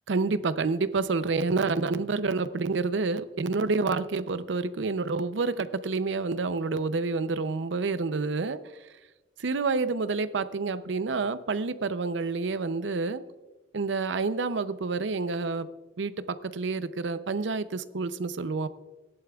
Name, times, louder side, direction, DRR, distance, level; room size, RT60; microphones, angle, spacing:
voice 1, 0.1-8.6 9.4-13.2 13.7-15.7 16.0-18.7, right 4 dB, 85° right, 13 dB, 0.6 m, -28 dB
17.0 x 11.0 x 2.4 m, 1.2 s
head